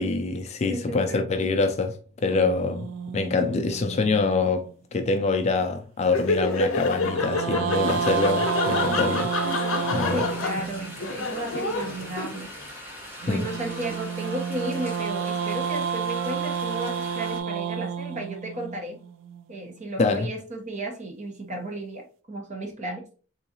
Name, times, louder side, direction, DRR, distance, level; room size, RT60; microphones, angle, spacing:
voice 1, 0.0-2.0 2.2-2.9 3.1-9.6 9.9-10.2 13.3-13.5 20.0-20.3, left 3 dB, 35° left, 0.4 m, -25 dB
voice 2, 0.6-1.5 10.1-12.8 13.2-19.0 19.5-23.0, right 1 dB, 35° right, 0.8 m, -34 dB
sound 1, 2.3-4.7 6.9-11.1 13.2-19.4, right 7 dB, 70° right, 0.3 m, -30 dB
Laughter, 6.0-12.6, left 3 dB, 80° left, 0.6 m, -28 dB
sound 2, 7.8-17.4, equal, 10° right, 0.9 m, -42 dB
3.8 x 2.7 x 2.7 m
head